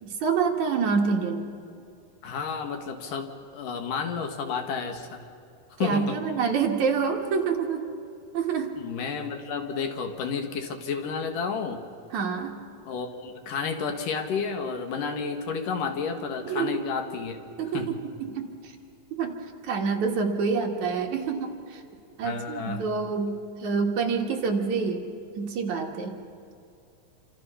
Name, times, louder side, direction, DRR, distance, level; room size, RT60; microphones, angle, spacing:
voice 1, 0.0-1.5 5.8-7.9 8.3-8.7 12.1-12.5 16.5-16.7 17.6-18.5 19.2-19.3 19.6-21.8 22.2-25.0 25.4-26.1, right 5 dB, 60° right, 1 dB, 3.0 m, -27 dB
voice 2, 2.2-5.3 5.8-6.2 8.8-11.8 12.8-17.4 17.7-18.0 22.2-22.8, left 5 dB, 70° left, 5 dB, 3.1 m, -31 dB
27.5 x 26.0 x 5.7 m, 2.5 s
omnidirectional pair, 4.1 m